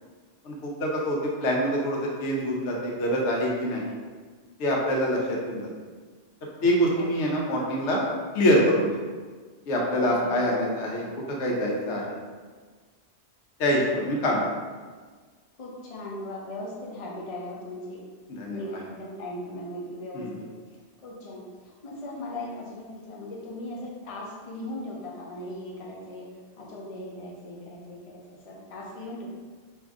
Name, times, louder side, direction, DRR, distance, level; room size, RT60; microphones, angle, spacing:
voice 1, 0.4-4.0 4.6-5.7 6.6-8.0 8.3-8.9 9.7-12.2 13.6-14.4 18.3-18.8 20.1-20.4, equal, 85° left, -2 dB, 1.0 m, -25 dB
voice 2, 10.0-10.4 11.0-11.1 15.6-18.0 18.5-20.5 21.0-21.4 21.8-26.3 26.6-29.3, left 1 dB, 35° left, -4 dB, 0.7 m, -38 dB
3.6 x 2.7 x 3.5 m, 1.5 s
omnidirectional pair, 1.2 m